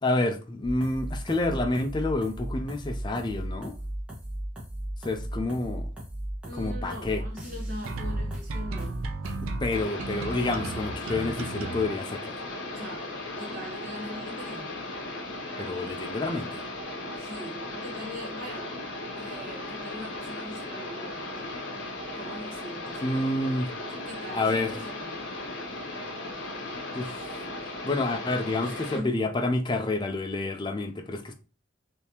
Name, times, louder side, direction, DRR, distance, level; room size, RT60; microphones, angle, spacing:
voice 1, 0.0-3.8 5.0-5.9 6.5-7.2 9.6-12.4 15.6-16.6 23.0-23.7 24.3-24.7 26.9-27.3 27.8-31.3, left 2 dB, 20° left, 0.4 m, -29 dB
sound 1, 0.6-9.8, right 1 dB, 5° right, 1.0 m, -36 dB
voice 2, 6.4-9.0 12.7-14.7 17.2-18.7 19.1-21.7 22.2-23.1 24.1-25.2 28.6-29.2, equal, 45° right, 1.1 m, -41 dB
sound 2, 7.9-11.9, right 3 dB, 85° right, 0.5 m, -35 dB
sound 3, 9.7-29.0, left 2 dB, 60° left, 1.0 m, -37 dB
3.5 x 2.7 x 2.8 m
head